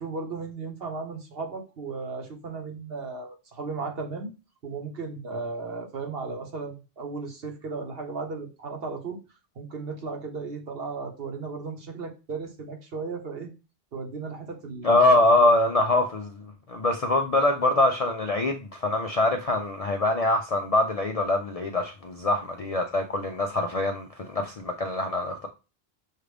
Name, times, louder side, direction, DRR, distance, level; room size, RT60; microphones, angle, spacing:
voice 1, 0.0-4.3 4.6-9.2 9.6-13.5 13.9-15.5, right 4 dB, 65° right, 1.2 m, -35 dB
voice 2, 14.8-25.5, left 2 dB, 50° left, 0.4 m, -24 dB
6.3 x 2.5 x 3.3 m
omnidirectional pair, 1.1 m